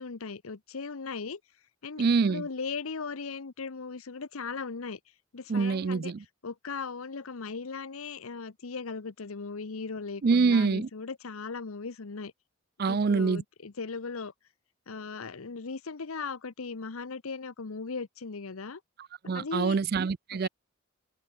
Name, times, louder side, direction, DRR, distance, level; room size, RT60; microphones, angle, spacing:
voice 1, 0.0-1.4 1.8-5.0 5.3-6.1 6.4-12.3 12.9-14.3 14.9-18.8 19.3-19.8 20.4-20.5, left 4 dB, 85° left, 0.9 m, -38 dB
voice 2, 2.0-2.4 5.5-6.2 10.2-10.9 12.8-13.4 19.3-20.5, right 4 dB, 45° right, 0.4 m, -25 dB
head